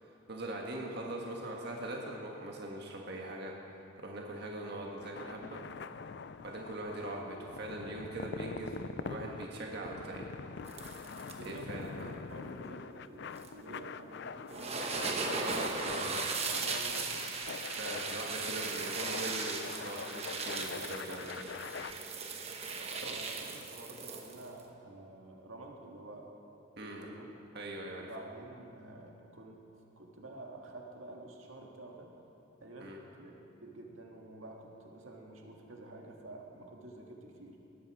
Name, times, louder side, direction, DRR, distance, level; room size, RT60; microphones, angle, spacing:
voice 1, 0.0-3.5 4.0-5.6 6.4-10.3 11.4-12.1 15.4-16.1 17.8-21.5 23.0-23.1 26.8-27.1 27.5-28.1 32.8-33.0, right 1 dB, 50° right, -1 dB, 1.7 m, -41 dB
sound 1, 4.9-21.9, left 5 dB, 55° left, 0.4 m, -44 dB
sound 2, 10.6-11.6 13.4-13.5 14.5-24.6, right 4 dB, 30° right, 1.2 m, -38 dB
voice 2, 11.3-15.8 16.5-17.1 22.8-26.3 26.8-27.4 28.0-29.6 30.0-32.1 32.6-33.3 33.6-37.6, right 2 dB, 80° right, 0 dB, 1.8 m, -49 dB
19.5 x 14.0 x 4.9 m, 2.9 s
head